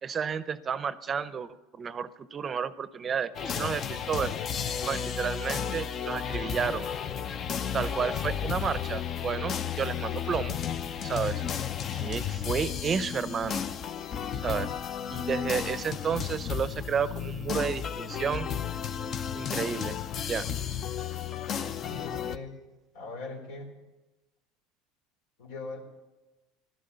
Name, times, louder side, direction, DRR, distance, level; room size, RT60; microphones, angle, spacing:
voice 1, 0.0-4.4 4.8-6.9 7.7-10.6 11.0-13.6 14.3-14.7 15.1-18.5 19.3-20.0 20.3-20.5, right 6 dB, 30° right, 15 dB, 0.6 m, -31 dB
sound 1, 3.3-22.4, left 8 dB, 40° left, 0.6 m, -33 dB
voice 2, 21.9-22.6 22.9-23.7 25.4-25.8, left 3 dB, 85° left, 3 dB, 3.6 m, -41 dB
16.0 x 12.0 x 6.8 m, 1.1 s
supercardioid pair, 120°, 0 cm